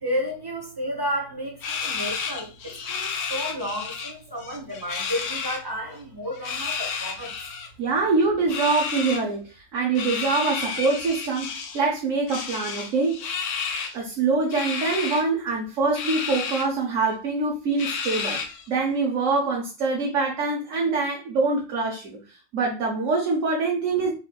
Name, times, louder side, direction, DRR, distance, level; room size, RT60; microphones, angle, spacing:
voice 1, 0.0-7.3, equal, 20° right, 0.9 m, -32 dB
sound 1, 1.6-4.1 4.4-5.6 6.3-7.7 8.5-9.2 10.0-11.8 12.3-14.0 14.5-15.2 15.9-16.7 17.1-17.2 17.8-18.7, left 5 dB, 75° left, 1.1 m, -31 dB
voice 2, 7.8-13.3 13.9-18.4 18.7-22.2 22.5-24.1, right 4 dB, 85° right, 1.2 m, -24 dB
4.2 x 3.4 x 2.2 m
omnidirectional pair, 1.3 m